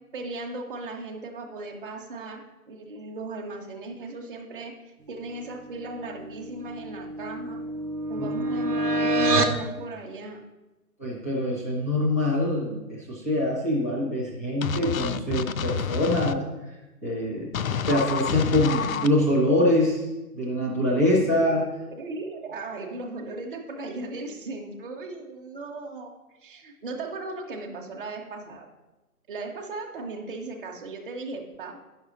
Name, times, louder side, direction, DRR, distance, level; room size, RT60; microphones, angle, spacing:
voice 1, 0.1-4.7 5.1-7.6 8.1-10.4 20.9-21.3 22.0-26.1 26.4-28.7 29.3-31.8, right 2 dB, 35° right, 1 dB, 0.9 m, -37 dB
sound 1, 6.4-9.6, right 2 dB, 90° right, 1.1 m, -26 dB
voice 2, 11.0-16.4 17.0-17.5 17.9-20.0 20.3-21.7, left 1 dB, 10° left, -3 dB, 0.6 m, -24 dB
sound 2, 14.6-16.4 17.5-19.1, left 7 dB, 65° left, 0.5 m, -28 dB
9.7 x 6.3 x 3.9 m, 1.1 s
hypercardioid pair, 155°, 46 cm